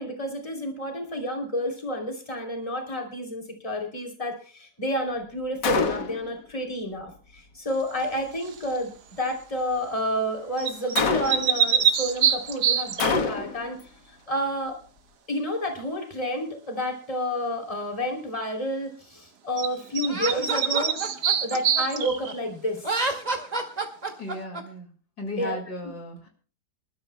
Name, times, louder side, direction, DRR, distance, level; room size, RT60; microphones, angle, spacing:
voice 1, 0.0-8.9 9.2-14.8 15.3-21.0 21.4-23.1 25.4-25.6, equal, 20° left, 2 dB, 3.2 m, -30 dB
Gunshot gunfire, 5.6-6.3 10.9-11.6 13.0-13.7, left 5 dB, 85° left, 1.9 m, -25 dB
sound 1, 8.4-8.8 10.6-13.2 19.6-19.7 19.9-22.4, right 8 dB, 75° right, 1.7 m, -25 dB
Laughter, 20.1-22.3 22.8-24.6, right 2 dB, 25° right, 2.1 m, -29 dB
voice 2, 24.2-24.9 25.2-26.3, left 1 dB, 65° left, 2 dB, 2.7 m, -35 dB
27.0 x 12.5 x 2.2 m, 0.40 s
omnidirectional pair, 1.8 m